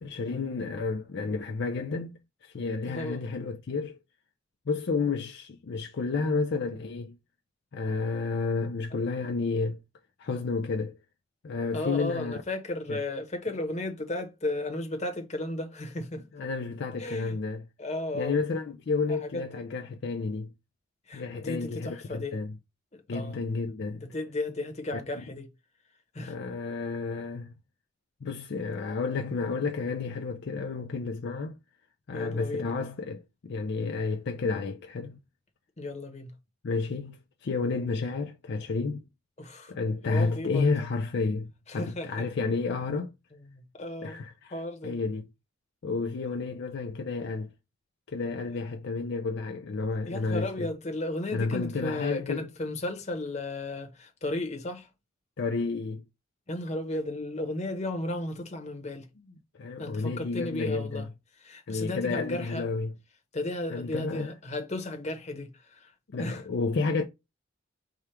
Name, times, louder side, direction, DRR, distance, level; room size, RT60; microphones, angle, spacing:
voice 1, 0.0-4.0 4.7-7.2 7.7-9.8 10.2-11.0 11.4-12.3 12.9-13.0 16.3-17.6 18.1-20.5 21.1-22.5 23.1-24.1 26.2-27.5 28.2-31.5 32.1-35.2 36.6-39.0 39.7-43.1 44.0-44.5 44.8-45.3 45.8-47.5 48.1-50.7 51.3-52.5 55.4-56.0 59.6-61.1 61.7-62.9 63.7-64.3 66.1-67.0, left 4 dB, 55° left, 0.5 m, -31 dB
voice 2, 2.9-3.2 11.7-16.2 17.0-17.3 17.8-18.4 19.1-19.4 21.1-22.4 22.9-23.4 24.0-25.5 26.1-26.4 32.1-32.7 35.8-36.3 39.4-39.7 40.1-40.7 41.7-42.1 43.5-44.2 44.5-45.0 50.1-54.9 56.5-59.1 59.8-61.1 61.4-62.6 63.3-65.9 66.2-66.4, left 2 dB, 35° left, 0.9 m, -34 dB
4.9 x 2.4 x 4.4 m
head